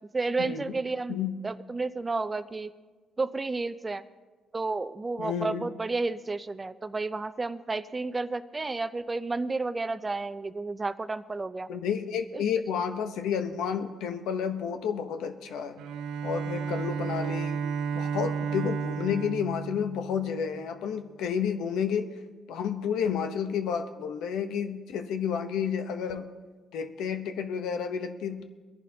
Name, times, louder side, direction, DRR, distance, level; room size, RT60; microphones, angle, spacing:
voice 1, 0.1-1.2 1.4-2.7 3.2-4.0 4.5-11.7 12.3-12.4, right 3 dB, 25° right, 12 dB, 0.6 m, -31 dB
voice 2, 5.2-5.6 11.7-15.8 16.2-17.6 17.9-22.1 22.5-26.3 26.7-28.4, left 7 dB, 85° left, 8 dB, 0.9 m, -31 dB
Bowed string instrument, 15.8-20.6, right 6 dB, 90° right, 0.5 m, -33 dB
22.5 x 11.0 x 2.8 m, 1.3 s
cardioid pair, 90°, 0 cm